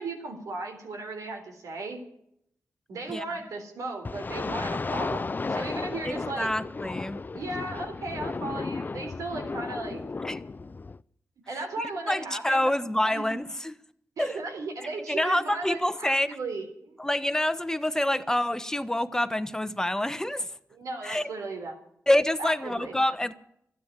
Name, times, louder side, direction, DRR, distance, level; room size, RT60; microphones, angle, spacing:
voice 1, 0.0-2.0 2.9-6.5 7.3-10.0 11.5-12.6 13.0-13.4 14.2-17.0 20.7-21.8 22.4-22.9, right 3 dB, 85° right, 3 dB, 3.7 m, -36 dB
sound 1, 4.0-11.0, left 3 dB, 35° left, 0.5 m, -34 dB
voice 2, 6.0-7.2 10.2-10.4 11.8-13.7 14.2-14.4 15.1-16.4 17.0-20.5 21.0-21.3 22.1-23.3, left 1 dB, 10° left, 12 dB, 1.1 m, -27 dB
13.0 x 9.3 x 9.9 m, 0.73 s
cardioid pair, 65°, 6 cm